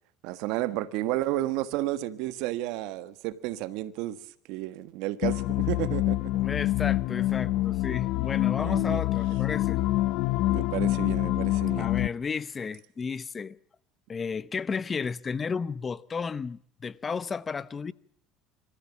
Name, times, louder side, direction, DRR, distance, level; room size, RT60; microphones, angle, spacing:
voice 1, 0.2-4.2 4.5-6.3 7.4-7.5 8.6-9.0 10.5-11.9, right 15 dB, 70° right, 1.4 m, -32 dB
sound 1, 5.2-12.1, left 16 dB, 65° left, 0.9 m, -26 dB
voice 2, 6.4-9.8 11.8-13.6 14.1-17.9, left 5 dB, 30° left, 0.7 m, -33 dB
26.5 x 14.5 x 7.1 m
supercardioid pair, 90°, 0 cm